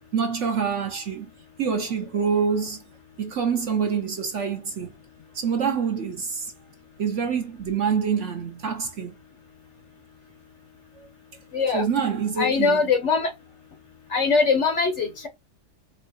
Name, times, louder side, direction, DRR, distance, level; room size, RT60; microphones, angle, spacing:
voice 1, 0.1-1.3 1.6-2.8 3.2-4.9 5.3-6.5 7.0-9.1 11.0-11.1 11.7-12.8, right 6 dB, 55° right, 0.9 m, -26 dB
voice 2, 11.5-11.9 12.4-13.3 14.1-15.3, left 4 dB, 60° left, 0.8 m, -22 dB
4.6 x 3.1 x 2.6 m
omnidirectional pair, 1.8 m